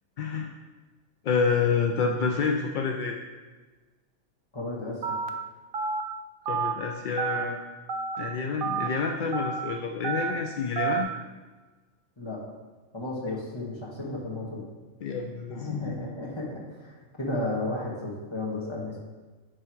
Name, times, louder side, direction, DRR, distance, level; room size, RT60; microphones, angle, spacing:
voice 1, 0.2-0.5 1.2-3.2 6.5-7.6 8.2-11.1 15.0-15.9, left 5 dB, 65° left, 2 dB, 0.5 m, -28 dB
voice 2, 4.5-5.2 12.2-12.4 12.9-14.6 15.5-19.0, left 2 dB, 20° left, -4 dB, 1.4 m, -33 dB
Telephone, 5.0-5.3 5.7-6.0 6.5-6.7 7.2-7.4 7.9-8.2 8.6-8.9 9.3-9.6 10.0-10.3 10.8-11.0, right 6 dB, 60° right, 0.6 m, -29 dB
9.5 x 3.5 x 4.6 m, 1.3 s
omnidirectional pair, 1.3 m